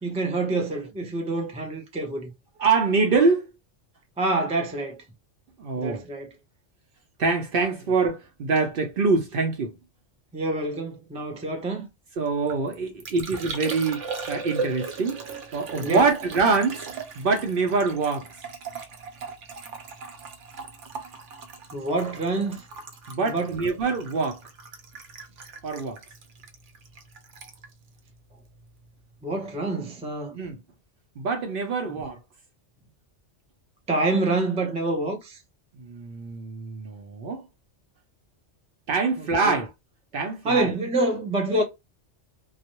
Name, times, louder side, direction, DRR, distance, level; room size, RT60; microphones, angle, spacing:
voice 1, 0.0-2.3 4.2-5.0 5.8-6.3 10.3-11.9 15.8-16.0 21.7-22.6 23.2-23.6 29.2-30.4 31.9-32.0 33.9-35.4 39.2-39.6 40.4-41.6, right 2 dB, 10° right, 0.3 m, -27 dB
voice 2, 2.6-3.5 5.6-6.0 7.2-9.7 12.2-15.2 15.5-16.9 17.2-18.3 23.1-24.4 25.6-26.0 30.3-30.6 31.2-32.2 35.8-37.4 38.9-39.7 40.1-40.7, right 4 dB, 60° right, 0.7 m, -24 dB
Liquid, 12.3-28.9 29.1-29.7, right 4 dB, 80° right, 0.9 m, -38 dB
2.3 x 2.1 x 2.8 m
omnidirectional pair, 1.2 m